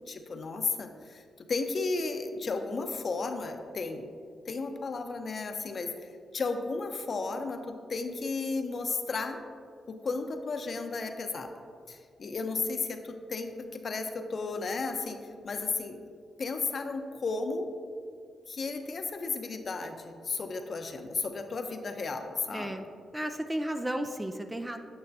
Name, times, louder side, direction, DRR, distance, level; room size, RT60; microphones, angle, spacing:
voice 1, 0.1-4.1 4.5-9.4 9.9-11.6 11.9-15.2 15.4-16.0 16.4-17.7 18.5-22.9, left 3 dB, 55° left, 6 dB, 0.8 m, -34 dB
voice 2, 22.5-22.8 23.1-24.8, right 1 dB, 15° right, 6 dB, 0.5 m, -33 dB
8.9 x 8.6 x 2.7 m, 2.3 s
supercardioid pair, 55°, 0 cm